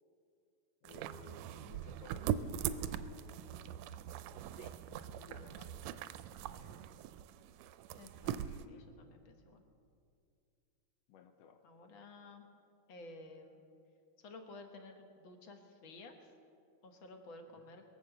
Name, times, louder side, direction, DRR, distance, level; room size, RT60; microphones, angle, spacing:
voice 1, 0.8-4.6 4.9-6.8 8.2-8.9 11.1-11.6 17.5-17.7, left 5 dB, 75° left, 6 dB, 1.7 m, -61 dB
sound 1, 0.8-8.7, right 10 dB, 80° right, 1.7 m, -41 dB
voice 2, 5.3-5.7 8.0-8.3 8.7-9.6 11.6-12.5 12.9-13.6 14.2-16.3 16.8-17.8, left 2 dB, 55° left, 4 dB, 1.6 m, -53 dB
22.5 x 7.8 x 6.9 m, 2.5 s
omnidirectional pair, 3.3 m